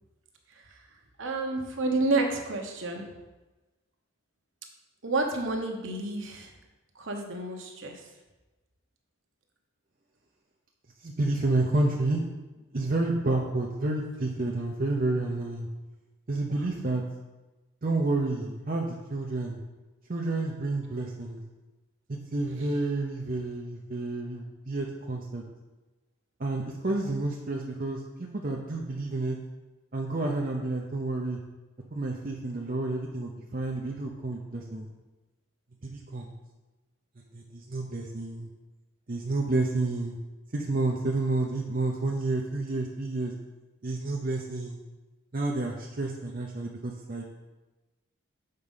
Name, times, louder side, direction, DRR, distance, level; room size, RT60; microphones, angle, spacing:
voice 1, 0.5-3.1 5.0-6.5 6.9-8.1 13.2-13.5 16.5-16.7 22.6-22.7, right 2 dB, 65° right, 3 dB, 1.1 m, -31 dB
voice 2, 11.0-12.2 12.7-15.7 16.3-17.0 17.8-19.6 20.1-21.4 22.1-25.4 26.4-29.4 29.9-31.4 31.9-34.9 35.8-36.3 37.3-38.5 39.1-40.2 40.5-43.3 43.8-44.8 45.3-47.2, right 2 dB, 40° right, 0 dB, 0.7 m, -30 dB
6.7 x 4.7 x 5.5 m, 1.1 s
head